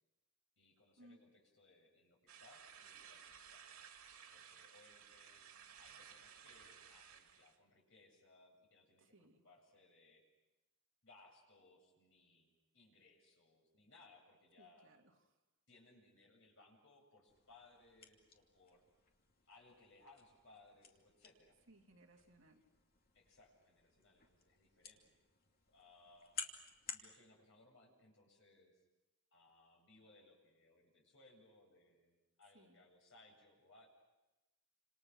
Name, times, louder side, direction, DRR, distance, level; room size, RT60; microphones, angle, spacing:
voice 1, 0.6-3.7 4.3-5.4 5.8-10.2 11.0-14.9 15.7-18.8 19.5-21.6 23.1-25.2 25.7-26.4 26.9-28.8 29.3-33.9, left 2 dB, 60° left, 1 dB, 7.9 m, -66 dB
sound 1, 2.3-7.6, right 7 dB, 90° right, 2.9 m, -58 dB
voice 2, 9.0-9.4 14.6-15.4 21.7-22.6 32.5-32.8, right 1 dB, 65° right, 2 dB, 2.8 m, -65 dB
sound 2, 17.3-27.1, left 6 dB, 45° left, 2.7 m, -54 dB
29.0 x 27.5 x 6.3 m, 1.0 s
head